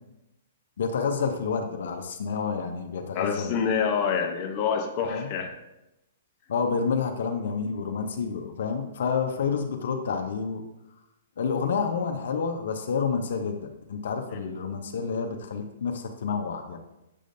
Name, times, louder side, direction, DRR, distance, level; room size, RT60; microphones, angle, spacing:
voice 1, 0.8-3.6 5.0-5.3 6.5-10.6 11.4-16.8, left 5 dB, 70° left, 4 dB, 0.7 m, -29 dB
voice 2, 3.1-5.5 14.3-14.4, left 6 dB, 35° left, 2 dB, 0.7 m, -27 dB
7.6 x 5.0 x 2.6 m, 0.93 s
hypercardioid pair, 145°, 0 cm